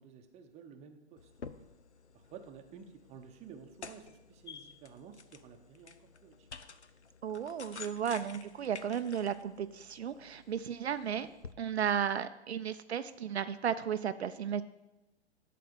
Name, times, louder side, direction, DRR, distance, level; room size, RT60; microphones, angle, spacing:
voice 1, 0.0-1.7 2.1-6.5, right 7 dB, 20° right, 5 dB, 0.8 m, -53 dB
sound 1, 1.2-11.5, left 5 dB, 85° left, 0.6 m, -51 dB
voice 2, 7.2-11.3 11.6-14.6, right 8 dB, 75° right, 11 dB, 0.5 m, -34 dB
11.0 x 4.2 x 6.9 m, 1.0 s
figure-of-eight pair, 115°, 33 cm